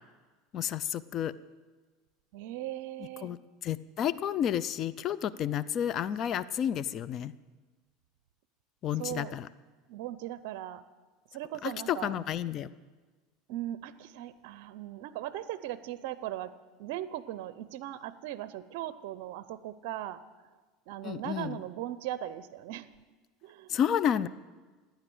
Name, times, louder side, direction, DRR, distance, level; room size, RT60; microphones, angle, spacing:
voice 1, 0.5-1.3 3.2-3.4 3.6-7.3 8.8-9.5 11.6-12.7 21.0-21.6 23.7-24.3, left 9 dB, 40° left, 17 dB, 0.5 m, -31 dB
voice 2, 2.3-3.3 9.0-9.4 9.9-10.8 11.3-12.2 13.5-16.5 16.8-20.2 20.9-22.9 23.4-23.8, right 13 dB, 70° right, 15 dB, 0.6 m, -38 dB
15.5 x 10.0 x 7.9 m, 1.3 s
supercardioid pair, 120°, 0 cm